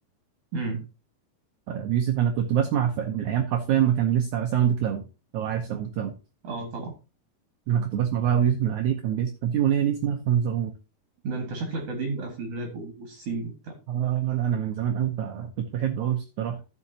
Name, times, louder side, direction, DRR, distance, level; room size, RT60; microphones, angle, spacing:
voice 1, 0.5-0.8 6.4-6.9 11.2-13.8, right 3 dB, 50° right, 3 dB, 2.1 m, -32 dB
voice 2, 1.7-5.0 5.3-6.1 7.7-10.7 13.9-16.6, right 9 dB, 85° right, 5 dB, 1.7 m, -25 dB
14.5 x 5.7 x 2.8 m, 0.30 s
omnidirectional pair, 4.4 m